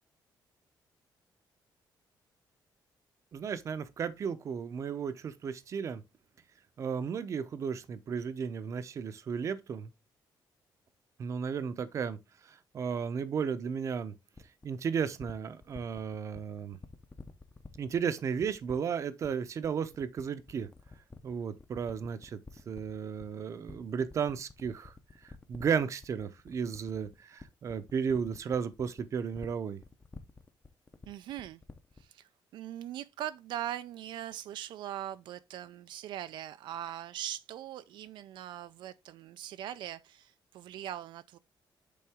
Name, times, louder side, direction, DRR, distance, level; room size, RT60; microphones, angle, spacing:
voice 1, 3.3-6.0 6.8-9.9 11.2-12.2 12.4-14.1 14.6-16.8 17.8-20.7 21.2-22.4 22.7-24.9 25.5-29.8, right 6 dB, 40° right, 0.7 m, -34 dB
sound 1, 14.3-32.1, left 3 dB, 15° left, 0.6 m, -50 dB
voice 2, 31.1-31.6 32.0-41.4, right 12 dB, 80° right, 0.4 m, -41 dB
8.5 x 3.9 x 3.5 m
cardioid pair, 165°, 8 cm